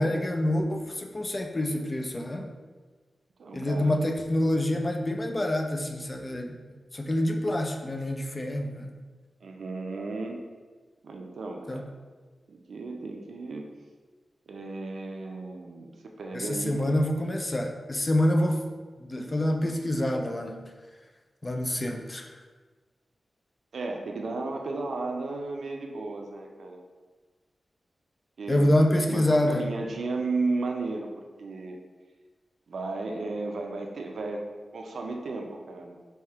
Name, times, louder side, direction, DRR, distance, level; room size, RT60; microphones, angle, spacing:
voice 1, 0.0-2.5 3.5-6.6 6.9-9.0 11.7-11.9 16.3-18.6 19.0-20.7 21.4-22.3 28.5-29.6, left 1 dB, 20° left, 4 dB, 0.3 m, -26 dB
voice 2, 3.4-4.0 9.4-10.4 11.0-11.9 12.5-13.7 14.5-17.0 23.7-26.8 28.4-28.8 29.0-31.1 31.4-31.8 32.7-34.4 34.7-36.0, right 3 dB, 70° right, 2 dB, 0.5 m, -34 dB
3.5 x 2.7 x 4.4 m, 1.4 s
wide cardioid pair, 170°, 0 cm